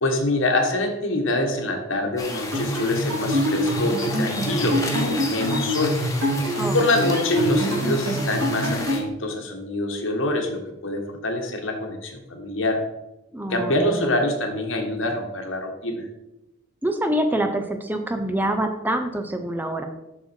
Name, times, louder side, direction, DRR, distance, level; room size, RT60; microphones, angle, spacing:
voice 1, 0.0-6.0 6.7-12.8 13.5-16.0, left 1 dB, 70° left, 3 dB, 1.5 m, -25 dB
sound 1, 2.2-9.0, left 3 dB, 15° left, 1.2 m, -33 dB
sound 2, 2.5-9.1, equal, 90° right, 3.0 m, -25 dB
voice 2, 13.3-14.1 16.8-19.9, right 1 dB, 10° right, 5 dB, 0.5 m, -25 dB
7.3 x 6.1 x 4.4 m, 0.95 s
head